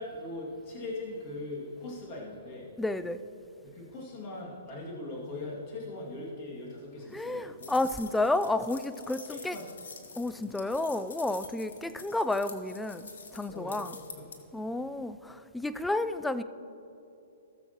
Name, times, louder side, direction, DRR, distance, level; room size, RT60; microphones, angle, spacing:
voice 1, 0.0-2.7 3.6-7.8 9.3-10.2 13.5-14.3, left 2 dB, 40° left, -3 dB, 2.3 m, -40 dB
voice 2, 2.8-3.2 7.1-9.6 10.2-14.0 14.5-16.4, left 2 dB, 5° left, 12 dB, 0.4 m, -31 dB
sound 1, 7.6-14.4, left 4 dB, 70° left, 1.2 m, -47 dB
18.0 x 7.0 x 3.0 m, 2.8 s
figure-of-eight pair, 120°, 0 cm